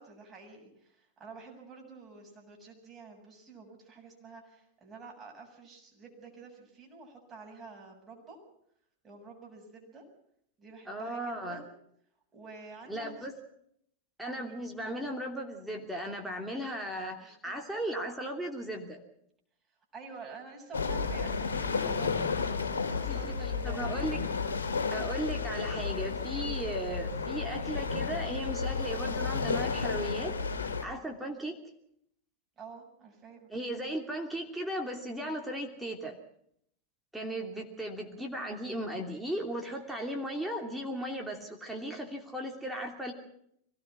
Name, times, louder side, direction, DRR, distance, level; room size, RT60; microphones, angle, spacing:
voice 1, 0.0-8.4 9.0-10.1 10.6-11.7 12.3-13.3 14.3-14.6 17.2-17.6 19.9-24.0 26.3-26.7 31.0-31.1 32.6-33.5, right 4 dB, 25° right, 0 dB, 7.4 m, -49 dB
voice 2, 10.9-11.6 12.9-13.3 14.2-19.0 23.1-23.3 23.6-24.2 24.9-31.6 33.5-36.2 37.1-43.1, right 1 dB, 5° right, 1 dB, 2.9 m, -36 dB
sound 1, 20.7-30.8, left 5 dB, 70° left, 2.2 m, -32 dB
24.5 x 18.5 x 6.2 m, 0.69 s
figure-of-eight pair, 90°, 0 cm